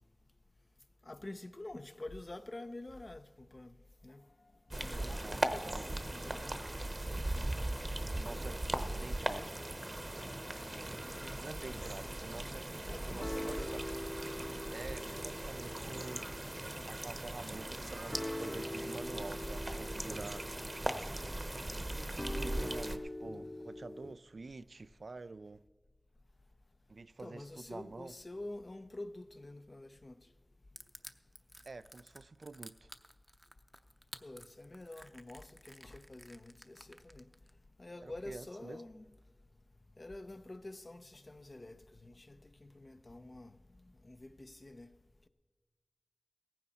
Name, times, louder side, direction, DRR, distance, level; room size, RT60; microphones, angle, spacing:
voice 1, 1.0-3.7 4.0-4.3 4.7-6.4 7.1-7.5 8.0-9.2 11.0-11.4 11.7-12.1 12.8-14.0 22.4-22.8 27.2-30.2 34.2-37.2 37.8-39.0 40.0-43.6 44.0-44.9, left 2 dB, 50° left, 0.7 m, -48 dB
sound 1, 4.7-23.0, right 1 dB, 35° right, 0.9 m, -39 dB
voice 2, 4.7-6.0 7.6-7.7 8.2-8.6 8.9-9.6 11.1-12.8 13.0-13.8 14.7-16.3 16.8-20.5 21.9-25.6 26.9-28.1 31.7-32.9 38.0-38.8, right 3 dB, 75° right, 0.3 m, -48 dB
sound 2, 10.2-11.3 11.7-12.1 12.4-12.9 13.2-24.1, left 1 dB, 20° left, 0.3 m, -45 dB
Crushing, 30.8-37.5, equal, 5° right, 0.7 m, -53 dB
17.0 x 15.0 x 4.1 m
wide cardioid pair, 50°, 0 cm